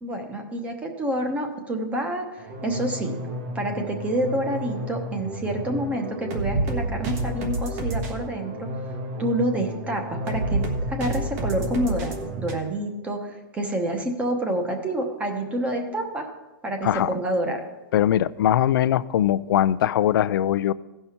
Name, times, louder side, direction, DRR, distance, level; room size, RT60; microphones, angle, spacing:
voice 1, 0.0-3.2 3.5-8.7 9.2-16.3 16.6-17.6, right 1 dB, 10° right, 4 dB, 1.0 m, -28 dB
sound 1, 2.4-12.5, right 1 dB, 40° right, 1.3 m, -30 dB
voice 2, 17.9-20.7, left 11 dB, 75° left, 15 dB, 0.4 m, -21 dB
16.0 x 5.6 x 4.4 m, 1.1 s
supercardioid pair, 160°, 12 cm